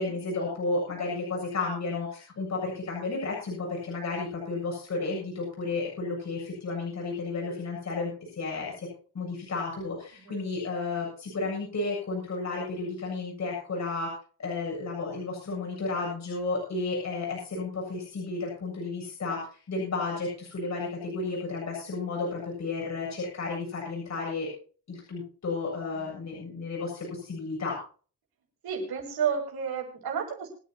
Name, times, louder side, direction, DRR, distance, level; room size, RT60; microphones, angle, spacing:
voice 1, 0.0-8.9 9.1-14.1 14.4-24.5 24.9-27.8, left 3 dB, 45° left, -2 dB, 7.8 m, -32 dB
voice 2, 10.1-10.5 25.9-26.0 28.6-30.5, right 7 dB, 70° right, 0 dB, 7.1 m, -32 dB
26.5 x 9.8 x 2.9 m, 0.40 s
wide cardioid pair, 160°, 40 cm